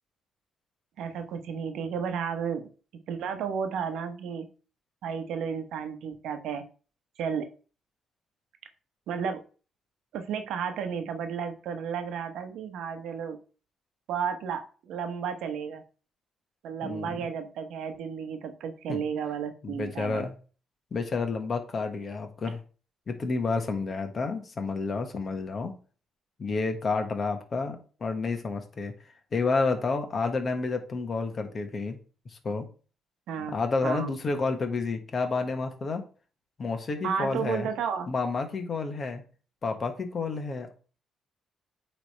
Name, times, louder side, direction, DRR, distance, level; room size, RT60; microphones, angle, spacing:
voice 1, 1.0-2.7 3.1-4.5 5.0-6.6 7.2-7.5 9.1-9.4 10.1-13.4 14.1-15.8 16.6-20.2 33.3-33.5 33.8-34.1 37.0-38.1, right 7 dB, 80° right, 7 dB, 1.0 m, -32 dB
voice 2, 19.6-20.3 20.9-22.6 23.1-25.7 26.4-28.9 29.3-32.0 32.3-32.7 33.5-36.0 36.6-37.7 38.1-39.2 39.6-40.7, left 4 dB, 45° left, 6 dB, 1.4 m, -30 dB
8.7 x 3.4 x 4.3 m, 0.38 s
cardioid pair, 90°, 0 cm